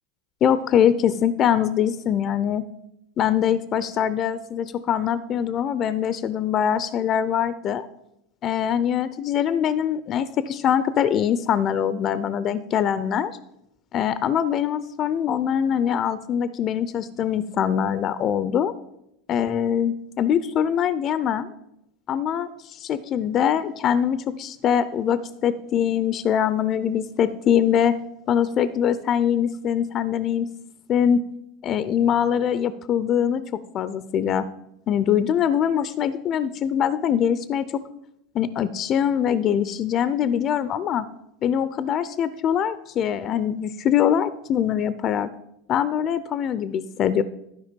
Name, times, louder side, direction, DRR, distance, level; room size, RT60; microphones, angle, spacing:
voice 1, 0.4-2.6 3.2-7.9 8.4-13.3 13.9-18.7 19.3-21.5 22.1-27.9 28.3-30.5 30.9-31.2 31.6-34.5 34.9-37.7 38.3-41.1 41.4-45.3 45.7-47.2, left 9 dB, 40° left, 15 dB, 0.4 m, -23 dB
12.0 x 4.8 x 5.2 m, 0.81 s
supercardioid pair, 110°, 0 cm